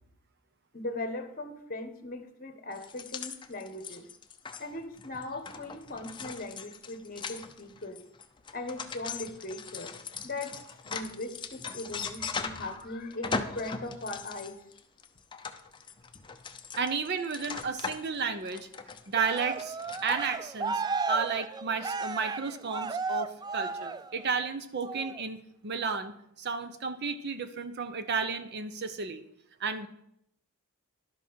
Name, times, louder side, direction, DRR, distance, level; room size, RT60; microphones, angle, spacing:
voice 1, 0.7-4.0 4.6-8.0 8.5-9.9 10.2-10.6 10.8-14.6, left 2 dB, 40° left, 9 dB, 1.2 m, -39 dB
sound 1, 2.8-12.8 13.1-20.4, left 5 dB, 20° left, 0.7 m, -40 dB
voice 2, 16.8-18.7 19.1-19.8 20.0-20.8 21.1-29.2 29.6-29.9, right 5 dB, 50° right, 10 dB, 0.7 m, -32 dB
Cheering, 19.1-24.4 24.8-25.2, right 4 dB, 20° right, 0.3 m, -34 dB
11.5 x 5.8 x 6.3 m, 0.74 s
head